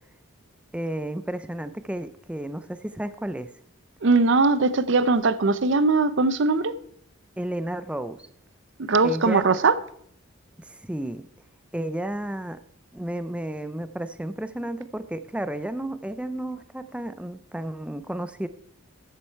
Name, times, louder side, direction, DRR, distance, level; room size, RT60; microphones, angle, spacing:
voice 1, 0.7-3.5 7.4-8.3 9.0-9.4 10.6-11.2 11.7-12.6 12.9-18.5, right 1 dB, 5° right, 12 dB, 0.4 m, -32 dB
voice 2, 4.0-6.7 8.8-9.7, right 3 dB, 60° right, 14 dB, 0.6 m, -20 dB
13.5 x 7.6 x 4.5 m, 0.67 s
head